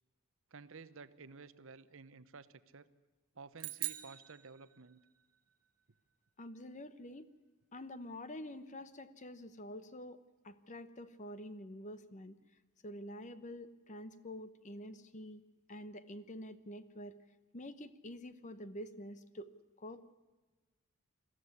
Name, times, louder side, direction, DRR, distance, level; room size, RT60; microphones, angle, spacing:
voice 1, 0.5-2.9 3.3-5.0, right 4 dB, 60° right, 14 dB, 0.9 m, -53 dB
sound 1, 3.6-5.2, right 16 dB, 80° right, 1.3 m, -43 dB
voice 2, 6.4-7.3 7.7-12.4 12.8-15.4 15.7-17.2 17.5-19.5 19.8-20.1, left 1 dB, 35° left, 13 dB, 0.9 m, -47 dB
21.5 x 14.5 x 9.8 m, 1.2 s
head